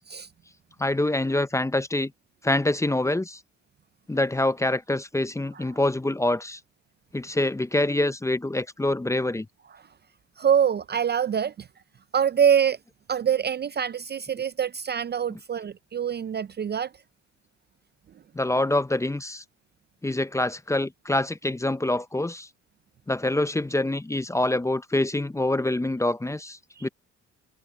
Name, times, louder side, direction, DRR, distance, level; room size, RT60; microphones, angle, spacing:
voice 1, 0.8-2.1 2.4-3.4 4.1-6.6 7.1-9.5 18.3-19.4 20.0-22.5 23.1-26.9, left 1 dB, 10° left, 0.6 m, -25 dB
voice 2, 10.4-11.7 12.1-12.8 13.1-16.9 26.8-26.9, right 8 dB, 35° right, 0.4 m, -25 dB
cardioid pair, 90°, 30 cm